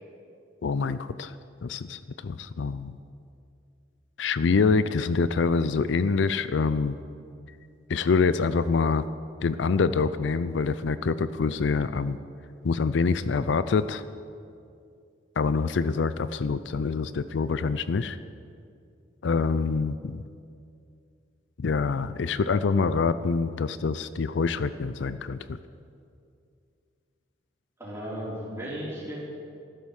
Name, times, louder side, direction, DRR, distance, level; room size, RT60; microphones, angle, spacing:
voice 1, 0.6-1.3 1.6-2.9 4.2-7.0 7.9-9.0 9.4-12.2 12.6-14.0 15.4-18.2 19.2-20.2 21.6-25.6, left 4 dB, 70° left, 14 dB, 0.4 m, -25 dB
voice 2, 27.8-29.2, equal, 15° right, -6 dB, 3.6 m, -35 dB
13.5 x 12.0 x 6.4 m, 2.4 s
head